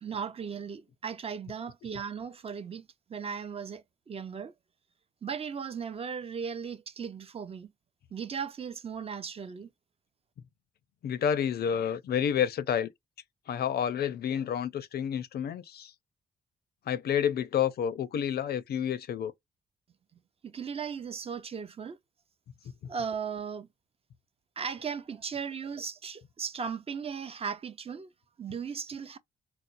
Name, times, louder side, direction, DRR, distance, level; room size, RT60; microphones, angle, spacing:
voice 1, 0.0-4.5 5.2-7.7 8.1-9.7 20.4-22.0 22.9-23.7 24.6-28.1 28.4-29.2, right 6 dB, 35° right, 0.5 m, -37 dB
voice 2, 11.0-12.9 13.5-15.9 16.9-19.3, left 8 dB, 65° left, 0.5 m, -29 dB
4.1 x 2.0 x 2.5 m
wide cardioid pair, 145°, 18 cm